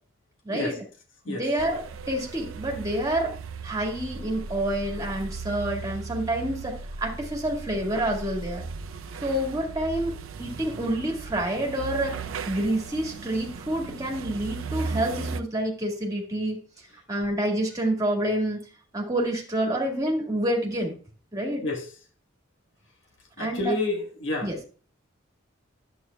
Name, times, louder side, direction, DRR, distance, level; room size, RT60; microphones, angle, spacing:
voice 1, 0.4-0.8 1.3-3.3 3.6-8.6 9.2-16.6 17.1-18.6 18.9-20.9 21.3-21.7 23.4-23.7 24.4-24.6, right 1 dB, 15° right, 1.7 m, -28 dB
sound 1, 1.6-15.4, right 4 dB, 75° right, 0.5 m, -37 dB
voice 2, 23.4-24.5, left 2 dB, 65° left, 1.3 m, -29 dB
11.0 x 7.9 x 2.2 m
head